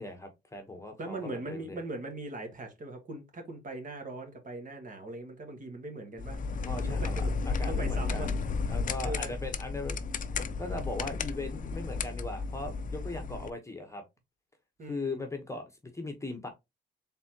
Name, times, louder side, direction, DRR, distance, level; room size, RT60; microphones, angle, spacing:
voice 1, 0.0-1.8 6.6-8.4 8.7-10.0 10.6-14.0 14.8-15.6 15.9-16.5, left 2 dB, 15° left, 1.1 m, -39 dB
voice 2, 1.0-6.4 6.8-7.3 7.7-8.3 9.0-9.4 14.8-15.2, right 2 dB, 40° right, 1.7 m, -40 dB
sound 1, 6.2-13.5, left 4 dB, 40° left, 0.5 m, -33 dB
4.1 x 3.6 x 2.9 m
cardioid pair, 90°, 20 cm